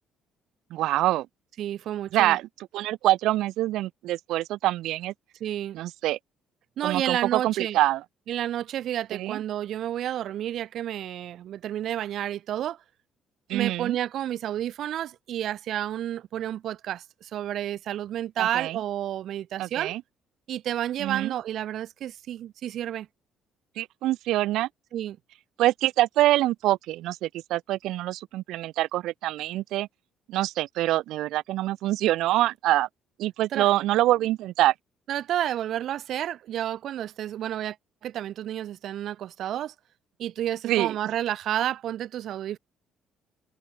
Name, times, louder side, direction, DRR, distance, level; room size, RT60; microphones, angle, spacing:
voice 1, 0.7-1.3 2.1-5.1 5.7-6.2 6.8-8.0 9.1-9.4 13.5-14.0 18.4-18.8 19.6-20.0 21.0-21.3 23.8-24.7 25.6-29.9 30.3-32.9 33.2-34.7 40.6-40.9, right 15 dB, 75° right, 0.6 m, -25 dB
voice 2, 1.6-2.4 5.4-5.8 6.8-7.8 8.3-12.8 13.5-19.9 20.5-23.1 24.9-25.2 33.5-33.7 35.1-37.8 38.0-39.7 40.2-42.6, right 11 dB, 55° right, 2.8 m, -30 dB
cardioid pair, 165°, 0 cm